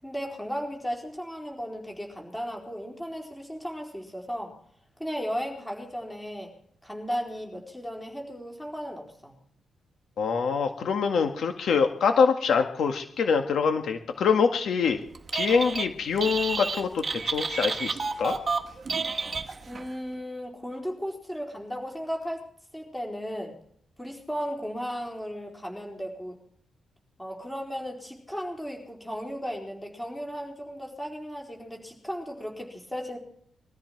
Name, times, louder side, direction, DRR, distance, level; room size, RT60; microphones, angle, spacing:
voice 1, 0.0-4.6 5.0-6.5 6.8-9.3 19.7-22.4 22.7-23.5 24.0-26.4 27.2-33.2, equal, 5° left, 1 dB, 4.3 m, -35 dB
voice 2, 10.2-15.0 15.3-18.4, left 5 dB, 60° left, 5 dB, 1.8 m, -25 dB
Telephone, 15.1-15.9 16.2-19.9, right 4 dB, 30° right, 1.4 m, -30 dB
22.0 x 14.0 x 4.7 m, 0.63 s
wide cardioid pair, 170°, 0 cm